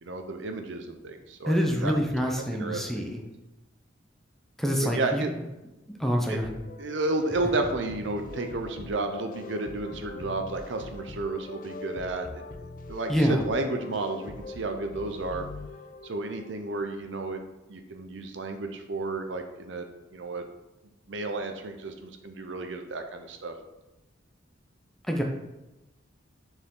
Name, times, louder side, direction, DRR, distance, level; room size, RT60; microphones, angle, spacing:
voice 1, 0.0-2.0 2.5-3.1 4.8-5.3 6.3-6.4 6.8-12.4 12.9-15.4 16.0-17.4 17.7-20.5 21.1-23.5, right 2 dB, 70° right, 5 dB, 0.7 m, -32 dB
voice 2, 1.5-3.2 4.6-5.2 6.0-6.6 13.1-13.5 25.1-25.2, equal, ahead, 1 dB, 0.7 m, -26 dB
sound 1, 6.4-16.5, left 3 dB, 45° left, 0.5 m, -42 dB
6.7 x 4.5 x 3.8 m, 0.99 s
head